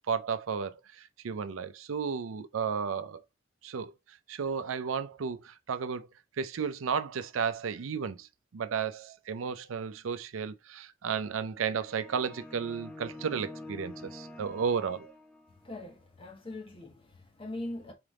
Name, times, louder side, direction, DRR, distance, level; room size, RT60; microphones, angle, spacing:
voice 1, 0.1-3.2 3.6-6.1 6.4-8.3 8.5-15.1, right 6 dB, 85° right, 0.5 m, -33 dB
sound 1, 11.8-15.8, left 2 dB, 5° left, 0.7 m, -47 dB
voice 2, 15.5-17.9, left 1 dB, 25° left, 1.2 m, -41 dB
3.9 x 3.4 x 3.6 m
head